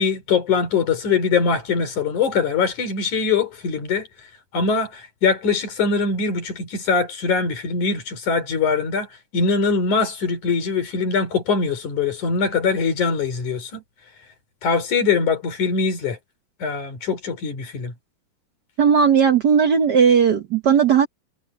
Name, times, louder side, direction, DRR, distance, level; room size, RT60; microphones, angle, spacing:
voice 1, 0.0-4.1 4.5-9.1 9.3-13.8 14.6-16.2 16.6-17.9, left 5 dB, 85° left, 5.2 m, -22 dB
voice 2, 18.8-21.1, right 7 dB, 70° right, 1.0 m, -16 dB
omnidirectional pair, 3.4 m